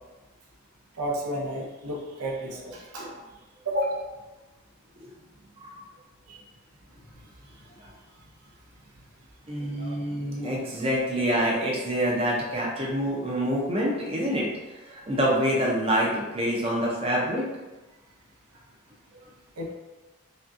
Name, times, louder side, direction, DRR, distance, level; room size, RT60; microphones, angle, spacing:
voice 1, 1.0-3.2 3.6-4.1 6.3-6.4 19.6-19.7, equal, 80° right, -1 dB, 0.8 m, -31 dB
voice 2, 2.6-3.0 5.0-5.1 5.6-5.8 9.5-17.4 19.1-19.2, equal, 25° right, -4 dB, 0.6 m, -27 dB
5.0 x 2.3 x 2.6 m, 1.1 s
head